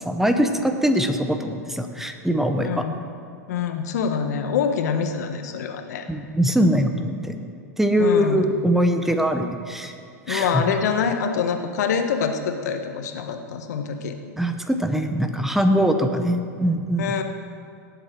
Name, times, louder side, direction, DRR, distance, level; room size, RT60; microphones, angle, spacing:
voice 1, 0.0-2.8 6.1-7.3 7.8-9.9 10.3-10.6 14.4-17.1, equal, 5° right, 6 dB, 1.0 m, -22 dB
voice 2, 2.6-3.0 3.5-6.0 8.0-8.5 10.3-14.2 17.0-17.2, left 6 dB, 70° left, 6 dB, 1.2 m, -25 dB
18.0 x 7.5 x 4.6 m, 2.4 s
hypercardioid pair, 105°, 9 cm